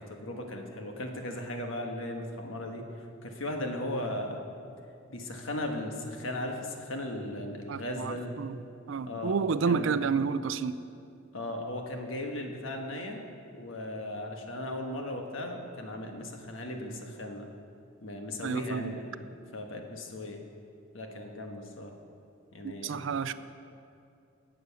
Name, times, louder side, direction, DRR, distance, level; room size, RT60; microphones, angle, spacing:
voice 1, 0.0-4.5 5.1-8.4 9.1-9.3 9.6-10.0 11.3-13.2 13.5-17.5 18.0-19.2 19.5-20.4 20.9-21.9 22.5-23.1, left 1 dB, 80° left, 1.4 m, -37 dB
voice 2, 7.7-8.5 8.9-10.8 18.4-19.0 22.6-23.3, right 5 dB, 70° right, 0.4 m, -30 dB
11.5 x 8.0 x 6.9 m
head